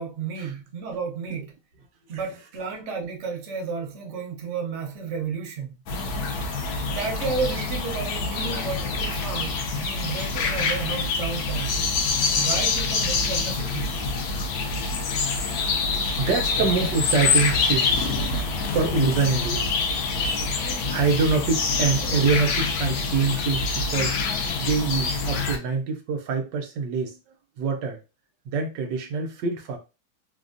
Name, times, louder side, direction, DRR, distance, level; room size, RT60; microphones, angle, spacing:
voice 1, 0.0-1.5 2.1-5.7 6.8-11.8 12.4-13.9, right 5 dB, 90° right, 0.6 m, -32 dB
sound 1, 5.9-25.6, left 4 dB, 70° left, 0.9 m, -26 dB
voice 2, 16.0-18.2 18.6-19.8 20.9-24.2 24.6-27.2 27.6-28.0 28.5-29.8, right 5 dB, 65° right, 1.2 m, -25 dB
3.4 x 2.4 x 2.5 m
omnidirectional pair, 2.2 m